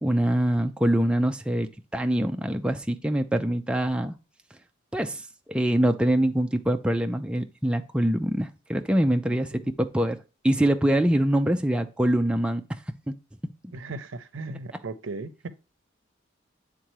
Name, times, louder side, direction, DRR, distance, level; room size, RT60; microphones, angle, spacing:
voice 1, 0.0-4.1 4.9-5.2 5.5-10.2 10.4-12.6 13.1-13.2, right 1 dB, 5° right, 0.3 m, -24 dB
voice 2, 9.3-9.7 13.7-15.5, right 3 dB, 80° right, 0.6 m, -37 dB
9.1 x 3.7 x 3.1 m
head